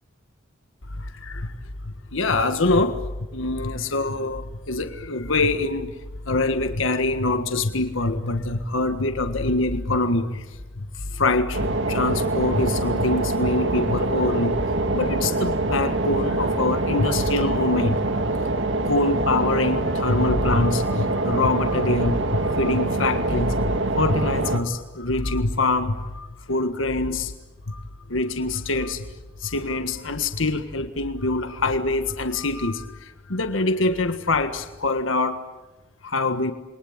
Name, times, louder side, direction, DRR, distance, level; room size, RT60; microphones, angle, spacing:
voice 1, 1.0-1.6 1.8-3.0 3.3-5.9 6.2-11.6 11.9-18.0 18.8-27.3 27.7-27.8 28.1-29.0 29.4-35.4 36.0-36.5, left 2 dB, 80° left, 8 dB, 1.6 m, -24 dB
sound 1, 11.5-24.6, right 2 dB, 65° right, 1.9 m, -25 dB
28.5 x 23.0 x 8.8 m, 1.1 s
head